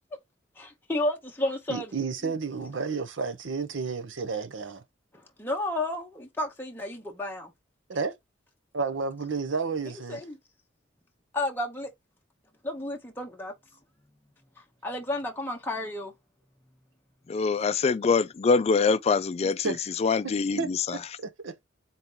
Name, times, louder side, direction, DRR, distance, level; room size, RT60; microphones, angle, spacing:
voice 1, 0.6-1.9 2.2-2.3 5.1-7.5 9.9-10.4 11.3-11.9 12.6-13.5 14.8-16.1, left 1 dB, 10° left, 0.7 m, -32 dB
voice 2, 1.7-4.8 7.9-8.1 8.7-10.2 19.4-19.8 20.6-20.7 21.2-21.5, right 4 dB, 75° right, 0.7 m, -31 dB
voice 3, 17.3-19.7 20.0-21.0, left 4 dB, 35° left, 0.3 m, -24 dB
4.0 x 2.8 x 3.7 m
head